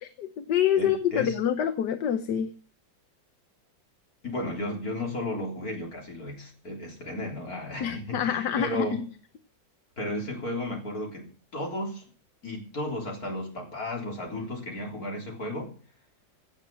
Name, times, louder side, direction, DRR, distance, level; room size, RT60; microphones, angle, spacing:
voice 1, 0.0-2.5 7.8-9.0, left 9 dB, 65° left, 1.5 m, -26 dB
voice 2, 0.8-1.4 4.2-9.0 10.0-12.0 12.4-15.7, left 1 dB, 50° left, 4.2 m, -34 dB
16.5 x 8.1 x 7.6 m
omnidirectional pair, 2.1 m